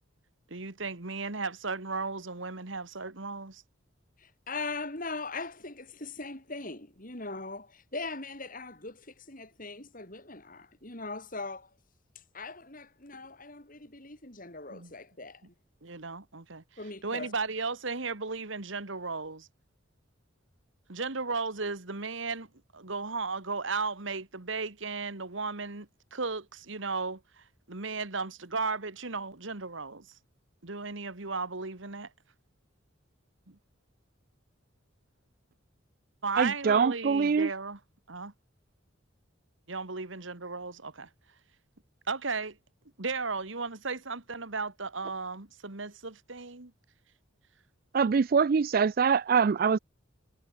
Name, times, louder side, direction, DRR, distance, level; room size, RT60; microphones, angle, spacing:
voice 1, 0.5-3.6 14.7-14.9 15.8-16.6 17.0-19.5 20.9-22.5 22.7-30.1 30.6-32.1 33.5-33.6 36.2-37.8 38.1-38.3 39.7-41.1 42.1-42.6 43.0-46.7, right 4 dB, 70° right, 1.9 m, -35 dB
voice 2, 4.2-11.7 12.1-15.4 16.8-17.3, left 3 dB, 45° left, 4.8 m, -40 dB
voice 3, 36.4-37.5 47.9-49.8, right 5 dB, 45° right, 0.4 m, -24 dB
head